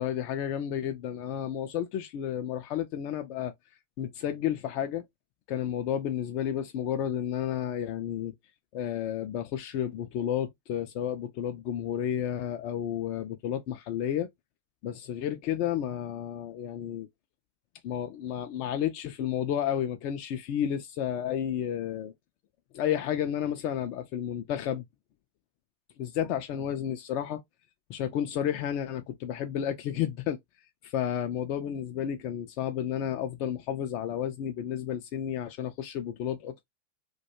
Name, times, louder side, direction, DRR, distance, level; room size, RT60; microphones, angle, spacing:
voice 1, 0.0-3.5 4.0-5.1 5.5-8.3 8.7-14.3 14.8-17.1 17.8-22.1 22.7-24.8 26.0-27.4 27.9-30.4 30.8-36.6, left 10 dB, 45° left, 0.3 m, -31 dB
2.2 x 2.2 x 2.8 m
figure-of-eight pair, 90°, 0 cm